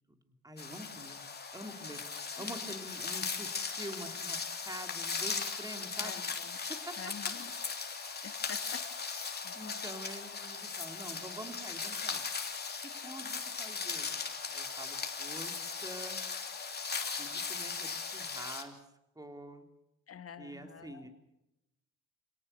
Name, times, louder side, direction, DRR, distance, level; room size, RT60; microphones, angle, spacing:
voice 1, 0.1-1.2 1.5-2.0 2.4-4.4 4.6-6.3 6.7-7.1 9.5-12.2 13.0-16.2 17.2-18.8 19.1-19.7 20.4-21.1, right 1 dB, 10° right, 6 dB, 3.3 m, -46 dB
sound 1, 0.6-18.6, left 5 dB, 30° left, 3.1 m, -38 dB
voice 2, 2.3-2.8 6.0-6.6 7.0-7.5 8.2-8.8 9.4-9.5 20.1-21.1, left 7 dB, 50° left, 9 dB, 2.1 m, -47 dB
27.0 x 18.0 x 6.9 m, 0.89 s
cardioid pair, 90°, 30 cm